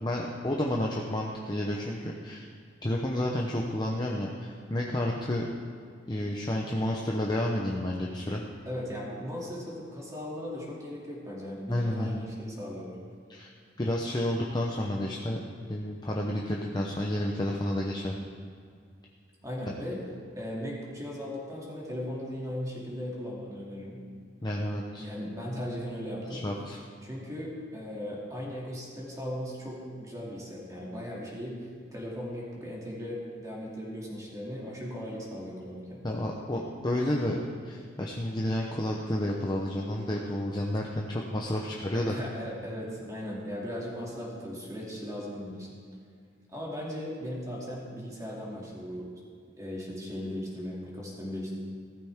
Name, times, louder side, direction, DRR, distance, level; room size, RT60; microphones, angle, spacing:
voice 1, 0.0-2.5 2.8-5.5 6.1-8.4 11.7-12.2 13.3-13.5 13.8-15.4 15.7-18.1 24.4-25.1 26.3-26.8 36.0-42.1, left 1 dB, 20° left, -1 dB, 0.8 m, -30 dB
voice 2, 8.7-13.0 19.4-20.0 20.3-24.1 25.0-26.4 27.0-36.0 41.9-45.7 46.5-49.0 49.6-51.5, equal, 15° right, -4 dB, 2.5 m, -37 dB
15.5 x 13.5 x 3.6 m, 2.3 s
head